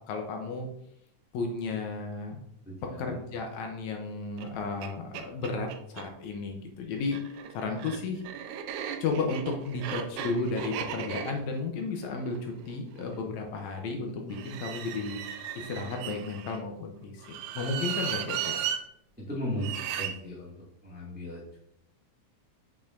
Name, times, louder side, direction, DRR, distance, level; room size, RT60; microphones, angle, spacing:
voice 1, 0.1-0.7 1.3-2.4 3.0-8.2 9.0-15.2 15.6-17.3 17.5-18.7, left 3 dB, 75° left, 3 dB, 2.1 m, -33 dB
voice 2, 2.6-3.2 19.2-20.5 20.8-21.6, equal, 5° right, -6 dB, 1.2 m, -36 dB
sound 1, 4.4-4.5 4.8-4.9 5.1-6.1 7.0-13.2 14.3-16.6 17.2-18.8 19.6-20.1, right 9 dB, 85° right, 2.1 m, -36 dB
6.4 x 6.0 x 2.5 m, 0.72 s
omnidirectional pair, 3.4 m